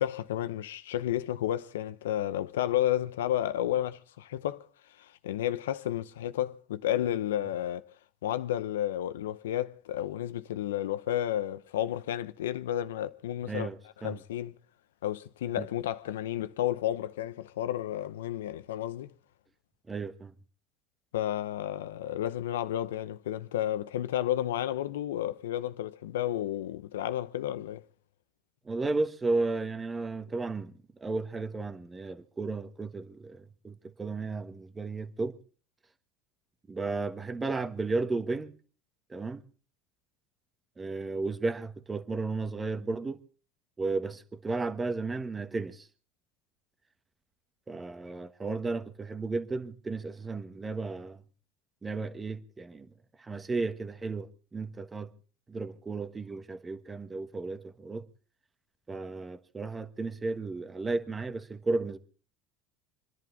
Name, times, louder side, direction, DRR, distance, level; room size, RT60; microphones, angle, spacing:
voice 1, 0.0-4.7 5.0-7.9 8.2-13.7 14.0-14.5 15.0-19.1 21.1-27.8, left 12 dB, 85° left, 0.8 m, -32 dB
voice 2, 13.4-14.2 15.6-15.7 19.9-20.3 28.6-30.7 31.0-35.4 36.7-38.5 39.1-39.4 40.8-43.2 43.8-45.9 47.7-51.2 51.8-52.9 53.2-55.1 55.5-58.1 58.9-62.0, right 3 dB, 20° right, 1.4 m, -34 dB
28.0 x 11.0 x 3.9 m
hypercardioid pair, 85°, 0 cm